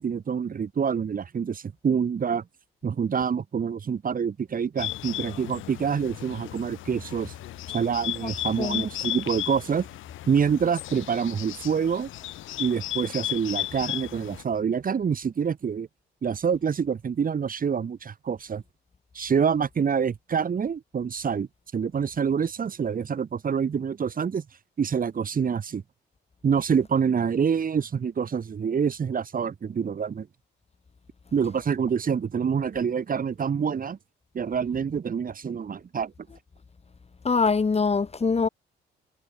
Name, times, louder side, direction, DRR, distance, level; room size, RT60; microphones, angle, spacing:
voice 1, 0.0-2.4 2.8-7.3 7.7-9.9 10.3-12.1 12.6-15.9 16.2-18.6 19.1-21.5 21.7-24.4 24.8-25.8 26.4-30.3 31.3-34.0 34.3-36.1, right 7 dB, 45° right, 2.9 m, -26 dB
Bird, 4.8-14.4, left 14 dB, 85° left, 4.8 m, -35 dB
voice 2, 37.2-38.5, left 4 dB, 30° left, 5.9 m, -23 dB
cardioid pair, 90°, 20 cm